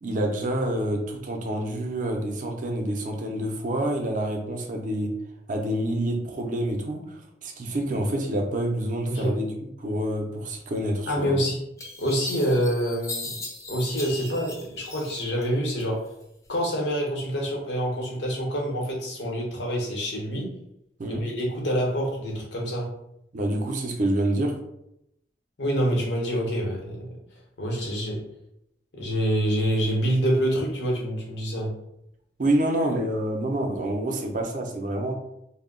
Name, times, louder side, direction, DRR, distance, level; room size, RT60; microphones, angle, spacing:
voice 1, 0.0-5.1 5.5-9.5 9.8-11.3 21.0-21.2 23.3-24.5 32.4-35.1, right 1 dB, 45° right, 3 dB, 0.4 m, -27 dB
voice 2, 9.0-9.4 11.1-11.6 12.0-13.3 13.7-16.0 16.5-20.5 21.1-22.9 25.6-27.1 27.6-28.2 28.9-31.7, equal, 75° left, -2 dB, 0.8 m, -26 dB
sound 1, 11.1-11.2 11.8-15.5 15.8-16.6, left 3 dB, 15° left, 0.3 m, -38 dB
2.2 x 2.1 x 3.6 m, 0.81 s
head